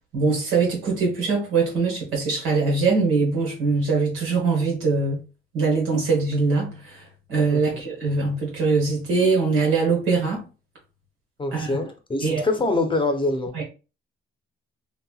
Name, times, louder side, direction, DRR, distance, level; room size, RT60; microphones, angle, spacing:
voice 1, 0.1-5.2 5.5-10.4 11.5-11.7 12.2-12.5 13.5-13.6, right 4 dB, 90° right, 1.5 m, -22 dB
voice 2, 11.4-13.5, left 2 dB, 25° left, 0.7 m, -24 dB
3.3 x 2.8 x 2.3 m
cardioid pair, 90°, 20 cm